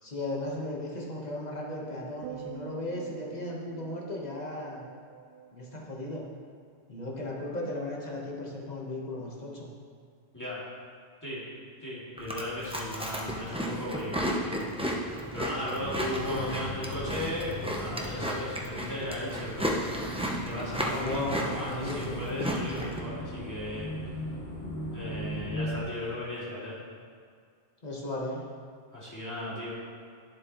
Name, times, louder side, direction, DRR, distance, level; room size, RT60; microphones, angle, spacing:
voice 1, 0.0-4.8 5.5-6.2 6.9-9.7 16.3-16.6 20.9-21.4 21.7-22.6 27.8-28.5, left 2 dB, 40° left, -3 dB, 1.5 m, -36 dB
sound 1, 2.2-6.6 6.9-7.3, right 11 dB, 65° right, 0.7 m, -46 dB
voice 2, 11.8-14.6 14.8-19.9 20.4-23.9 24.9-26.8 28.9-29.7, left 1 dB, 15° left, -9 dB, 2.5 m, -36 dB
Chewing mastication, 12.2-23.0, equal, 5° right, 0.7 m, -34 dB
sound 2, 15.7-25.8, equal, 65° left, 2.8 m, -39 dB
11.5 x 7.5 x 3.1 m, 2.2 s
omnidirectional pair, 1.1 m